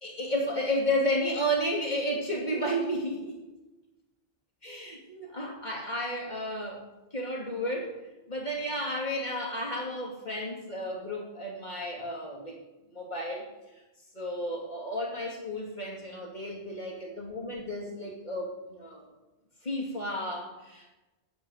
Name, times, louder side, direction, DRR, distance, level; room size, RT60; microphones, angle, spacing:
voice 1, 0.0-3.4 4.6-6.8 7.1-7.9 8.3-12.6 12.9-13.5 14.1-19.1 19.6-20.9, equal, 45° left, -2 dB, 2.7 m, -32 dB
9.7 x 7.5 x 7.7 m, 1.1 s
omnidirectional pair, 1.0 m